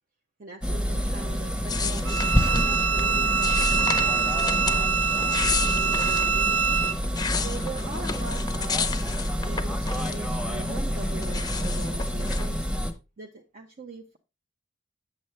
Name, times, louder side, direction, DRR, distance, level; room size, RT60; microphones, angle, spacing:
voice 1, 0.4-5.0 5.7-6.8 7.4-8.9 9.4-12.7 13.2-14.2, right 3 dB, 50° right, 1 dB, 0.8 m, -41 dB
sound 1, 0.6-12.9, equal, 5° right, 1.0 m, -28 dB
sound 2, 1.7-2.8 3.4-4.8 5.2-6.3 6.8-10.4 10.7-12.5, left 5 dB, 20° left, 0.6 m, -32 dB
Bowed string instrument, 2.0-7.0, right 6 dB, 70° right, 0.5 m, -25 dB
7.9 x 7.1 x 3.2 m, 0.26 s
head